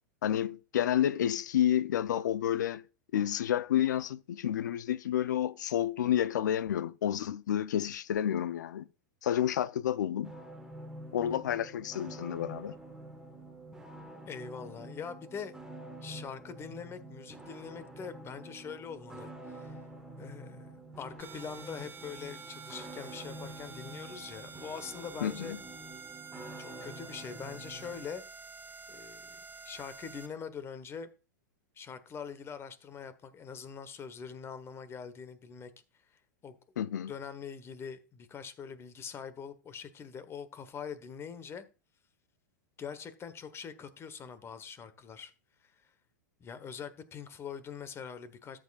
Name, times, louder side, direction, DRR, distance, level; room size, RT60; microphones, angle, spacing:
voice 1, 0.2-2.8 3.1-8.9 9.2-10.3 11.1-12.7 25.2-25.6 36.8-37.1, left 10 dB, 75° left, 0.6 m, -30 dB
sound 1, 10.2-28.1, right 1 dB, 5° right, 1.6 m, -47 dB
voice 2, 14.3-15.6 16.0-19.8 20.2-25.5 26.6-28.2 28.9-29.4 29.6-31.1 31.8-35.7 36.4-36.6 37.1-41.6 42.8-45.3 46.4-48.6, left 6 dB, 25° left, 1.3 m, -43 dB
sound 2, 21.2-30.3, right 5 dB, 20° right, 1.5 m, -49 dB
13.0 x 7.6 x 2.5 m
hypercardioid pair, 110°, 10 cm